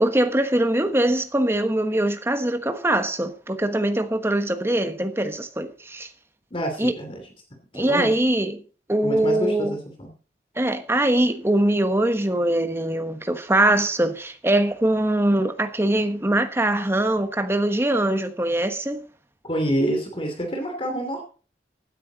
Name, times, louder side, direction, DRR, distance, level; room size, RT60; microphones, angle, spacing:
voice 1, 0.0-6.1 6.8-6.9 7.7-8.6 8.9-9.8 10.6-19.0, right 1 dB, 15° right, 1.2 m, -22 dB
voice 2, 6.5-7.2 7.7-8.2 9.0-10.1 19.4-21.2, right 1 dB, 30° left, 2.8 m, -27 dB
15.5 x 10.0 x 4.0 m
head